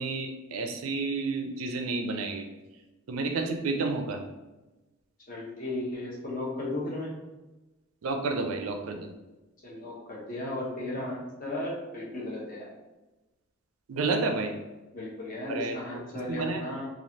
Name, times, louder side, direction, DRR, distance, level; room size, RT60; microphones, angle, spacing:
voice 1, 0.0-2.5 3.1-4.2 8.0-9.1 13.9-14.5 15.5-16.0 16.3-16.6, right 3 dB, 85° right, 4 dB, 0.5 m, -30 dB
voice 2, 5.3-7.1 9.6-12.7 14.9-16.8, left 1 dB, 40° left, -4 dB, 0.9 m, -35 dB
3.1 x 2.4 x 2.8 m, 1.1 s
head